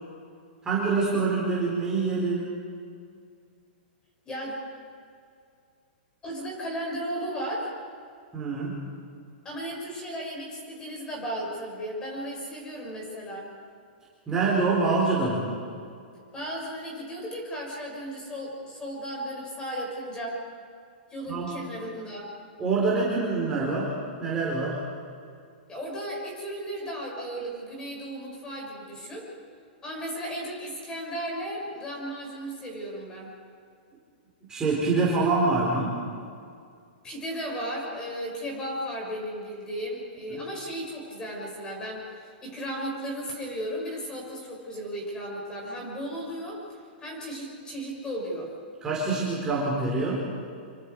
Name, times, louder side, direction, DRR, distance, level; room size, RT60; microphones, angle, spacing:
voice 1, 0.6-2.5 8.3-8.7 14.3-15.5 21.3-21.6 22.6-24.8 34.5-36.0 40.3-40.4 48.8-50.2, right 3 dB, 10° right, -6 dB, 4.3 m, -25 dB
voice 2, 6.2-7.7 9.4-13.5 16.3-20.4 21.1-22.3 25.7-29.3 29.8-33.3 37.0-46.6 47.0-48.5, equal, 15° left, -2 dB, 6.1 m, -35 dB
26.5 x 24.5 x 4.8 m, 2.3 s
hypercardioid pair, 160°, 5 cm